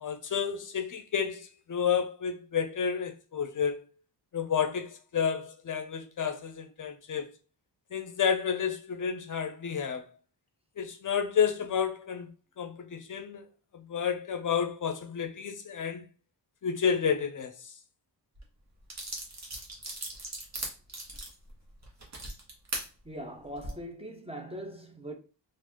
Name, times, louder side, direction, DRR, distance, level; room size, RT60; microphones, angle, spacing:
voice 1, 0.0-3.8 4.3-7.3 7.9-10.1 10.8-12.3 12.6-13.5 13.7-16.1 16.6-17.7, left 7 dB, 50° left, 0.6 m, -30 dB
sound 1, 18.4-18.5 18.9-22.9 23.4-23.7, right 2 dB, 40° right, 1.2 m, -38 dB
voice 2, 23.0-25.2, equal, 15° right, 0.6 m, -41 dB
3.8 x 2.5 x 2.9 m
wide cardioid pair, 105°, 41 cm